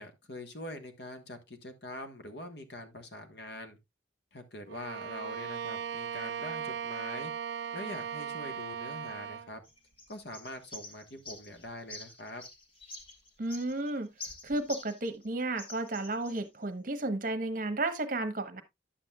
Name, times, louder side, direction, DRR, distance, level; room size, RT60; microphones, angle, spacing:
voice 1, 0.0-3.8 4.3-7.3 7.7-9.6 10.1-12.4, left 1 dB, 60° left, 1.4 m, -44 dB
Bowed string instrument, 4.7-9.5, right 7 dB, 65° right, 0.4 m, -38 dB
sound 1, 9.6-15.3 15.6-16.5, left 2 dB, 30° left, 1.7 m, -47 dB
voice 2, 13.4-14.1 14.4-18.6, right 2 dB, 45° right, 1.0 m, -33 dB
10.5 x 7.7 x 2.3 m
head